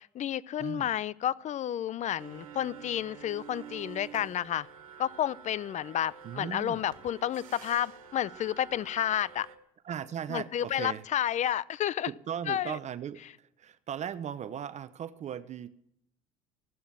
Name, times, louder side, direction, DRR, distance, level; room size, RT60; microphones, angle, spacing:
voice 1, 0.0-4.7 5.0-9.5 10.3-12.1 12.5-12.8, left 11 dB, 45° left, 22 dB, 0.6 m, -31 dB
sound 1, 2.2-9.6, right 8 dB, 90° right, 1.6 m, -48 dB
voice 2, 6.2-6.8 9.8-11.0 12.1-15.7, right 9 dB, 45° right, 15 dB, 0.8 m, -38 dB
15.5 x 12.0 x 7.3 m, 0.76 s
hypercardioid pair, 70°, 17 cm